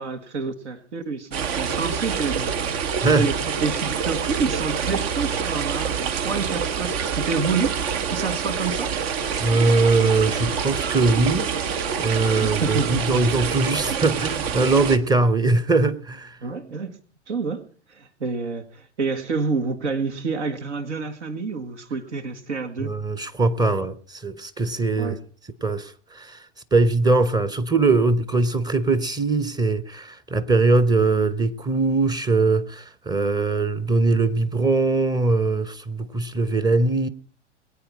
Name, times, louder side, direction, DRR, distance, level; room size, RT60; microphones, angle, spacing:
voice 1, 0.0-7.7 8.1-8.9 12.4-13.3 16.4-17.0 17.3-23.0 25.0-25.2, right 4 dB, 75° right, 1.9 m, -28 dB
sound 1, 1.3-15.0, right 7 dB, 60° right, 1.3 m, -26 dB
voice 2, 9.4-11.5 12.0-16.4 22.8-25.2 25.6-26.4 26.7-37.1, right 3 dB, 10° right, 0.8 m, -21 dB
22.5 x 9.1 x 4.8 m
hypercardioid pair, 100°, 36 cm